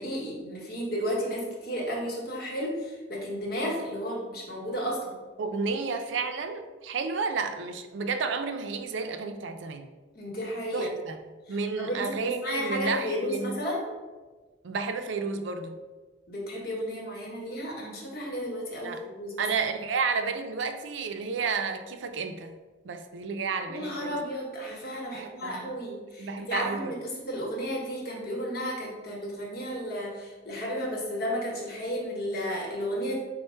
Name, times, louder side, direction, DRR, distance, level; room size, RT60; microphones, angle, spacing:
voice 1, 0.0-5.2 10.1-10.9 11.5-13.8 16.3-19.4 23.7-33.2, equal, 55° left, -2 dB, 1.0 m, -33 dB
voice 2, 5.4-9.9 10.7-13.6 14.6-15.8 18.8-19.0 19.4-22.6 22.8-24.2 25.1-25.7 26.2-26.9, right 4 dB, 90° right, 7 dB, 0.4 m, -31 dB
4.4 x 2.1 x 4.3 m, 1.3 s
head